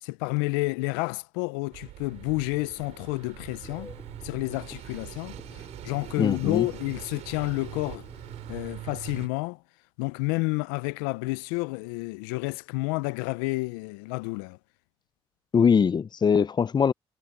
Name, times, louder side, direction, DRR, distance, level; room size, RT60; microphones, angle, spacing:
voice 1, 0.0-3.9 4.2-8.1 8.5-9.6 10.0-14.6, left 25 dB, 90° left, 0.4 m, -30 dB
sound 1, 1.7-9.3, right 15 dB, 75° right, 3.4 m, -43 dB
Telephone, 3.6-8.8, left 2 dB, 25° left, 5.6 m, -49 dB
voice 2, 6.2-6.7 15.5-16.9, left 6 dB, 40° left, 0.6 m, -22 dB
hypercardioid pair, 50°, 11 cm